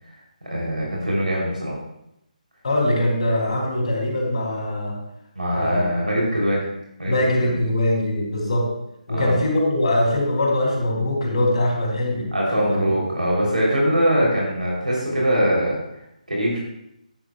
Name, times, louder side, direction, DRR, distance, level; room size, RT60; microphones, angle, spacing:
voice 1, 0.5-1.8 5.3-6.6 7.0-7.5 9.1-9.4 12.3-15.8 16.3-16.6, equal, 75° right, -4 dB, 3.3 m, -22 dB
voice 2, 2.6-5.0 5.5-5.9 7.1-8.7 9.1-12.8, left 1 dB, 50° left, -1 dB, 2.9 m, -22 dB
10.5 x 9.9 x 2.3 m, 0.82 s
figure-of-eight pair, 145°, 4 cm